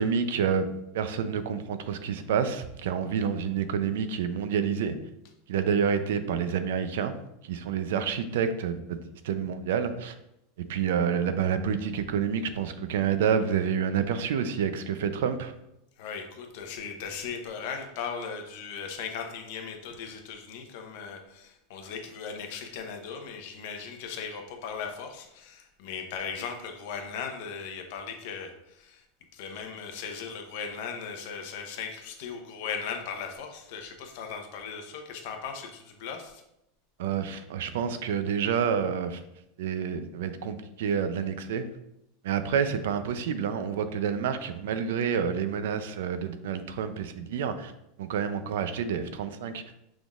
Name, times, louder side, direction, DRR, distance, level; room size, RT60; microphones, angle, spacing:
voice 1, 0.0-5.0 5.5-7.2 7.4-9.0 9.2-10.1 10.6-15.5 37.0-39.2 39.6-41.7 42.2-47.7 48.0-49.6, right 7 dB, 75° right, 11 dB, 0.5 m, -28 dB
voice 2, 16.0-29.0 29.3-36.4, left 6 dB, 55° left, 4 dB, 0.8 m, -38 dB
6.0 x 3.6 x 2.4 m, 0.83 s
supercardioid pair, 170°, 0 cm